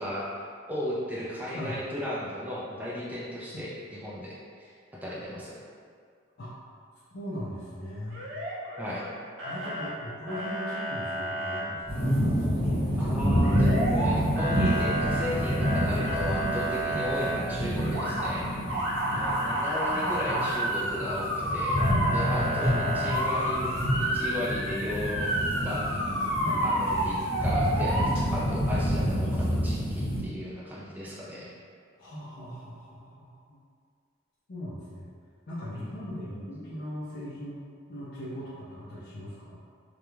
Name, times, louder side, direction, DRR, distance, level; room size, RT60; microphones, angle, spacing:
voice 1, 0.0-5.6 8.8-9.1 13.0-18.5 19.2-25.3 25.6-25.8 26.6-28.0 28.3-31.5 35.7-36.5, left 1 dB, 10° right, -7 dB, 0.4 m, -35 dB
voice 2, 7.1-8.2 9.4-13.1 16.9-17.1 19.1-19.4 19.9-20.5 22.4-22.9 26.4-26.6 32.0-33.6 34.5-35.1 35.5-37.6 37.9-39.6, equal, 50° left, -10 dB, 0.4 m, -39 dB
Motor vehicle (road) / Siren, 8.1-9.1 9.4-9.9 10.3-11.6 13.4-14.1 14.4-17.3 17.8-18.3 18.7-28.0, right 1 dB, 70° right, 0.6 m, -30 dB
sound 1, 11.9-30.2, equal, 10° left, 1.3 m, -28 dB
2.4 x 2.1 x 3.0 m, 2.1 s
head